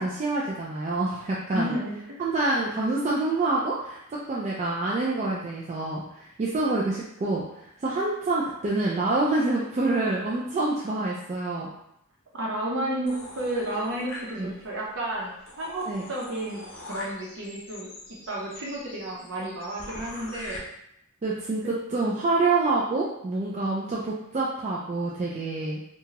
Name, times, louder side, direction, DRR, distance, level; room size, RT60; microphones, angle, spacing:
voice 1, 0.0-1.7 2.2-11.7 14.3-14.5 15.9-16.1 21.2-25.8, right 2 dB, 30° right, -5 dB, 0.3 m, -27 dB
voice 2, 1.5-2.2 12.3-17.9 18.3-20.6, right 1 dB, 60° right, -3 dB, 0.7 m, -32 dB
sound 1, 13.1-14.7 15.1-15.2 15.5-20.6, left 2 dB, 60° left, 0.6 m, -43 dB
2.8 x 2.3 x 2.9 m, 0.79 s
head